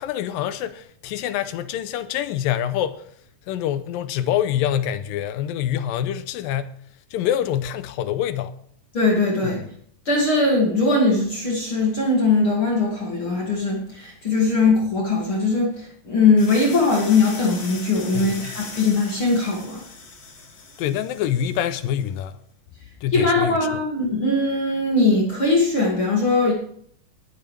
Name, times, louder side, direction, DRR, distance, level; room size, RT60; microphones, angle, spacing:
voice 1, 0.0-3.0 3.5-6.7 7.1-8.5 18.1-18.5 20.8-22.4 23.0-23.6, left 10 dB, 90° left, 2.5 m, -25 dB
voice 2, 8.9-9.7 10.1-19.8 23.1-26.5, left 3 dB, 40° left, 2.9 m, -20 dB
sound 1, 16.4-22.1, left 4 dB, 55° left, 3.8 m, -39 dB
20.0 x 9.3 x 3.4 m
omnidirectional pair, 4.0 m